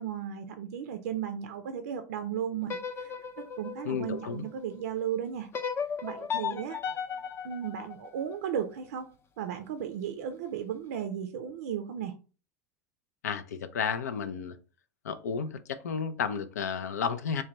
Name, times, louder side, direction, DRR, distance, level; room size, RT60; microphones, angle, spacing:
voice 1, 0.0-3.1 3.4-5.5 6.0-6.8 7.4-12.1, right 9 dB, 75° right, 8 dB, 0.4 m, -35 dB
sound 1, 2.6-4.8 5.5-8.7, left 7 dB, 30° left, 0.5 m, -36 dB
voice 2, 3.9-4.4 13.2-14.6 15.0-17.4, left 6 dB, 85° left, 10 dB, 0.4 m, -32 dB
3.3 x 2.2 x 3.8 m, 0.35 s
hypercardioid pair, 85°, 9 cm